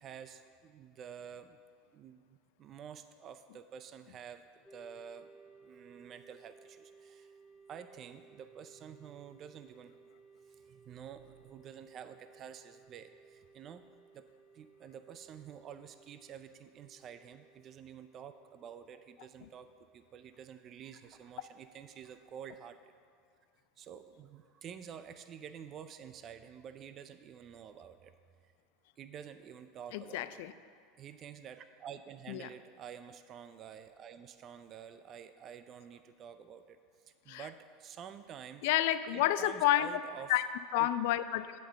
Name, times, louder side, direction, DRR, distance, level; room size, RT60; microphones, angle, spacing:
voice 1, 0.0-1.6 1.9-5.4 5.6-7.3 7.7-10.0 10.5-13.8 14.1-14.3 14.5-22.8 23.8-28.1 28.4-28.5 29.0-30.4 31.0-36.8 37.2-38.7 39.1-40.3 40.7-40.9, right 8 dB, 40° right, 10 dB, 0.5 m, -49 dB
sound 1, 4.6-22.0, right 4 dB, 5° right, 1.4 m, -61 dB
voice 2, 29.9-30.5 32.3-32.4 37.3-37.4 38.6-39.9 40.3-40.4 40.7-41.5, left 14 dB, 70° left, 13 dB, 0.4 m, -29 dB
7.9 x 5.3 x 7.4 m, 2.2 s
hypercardioid pair, 95°, 0 cm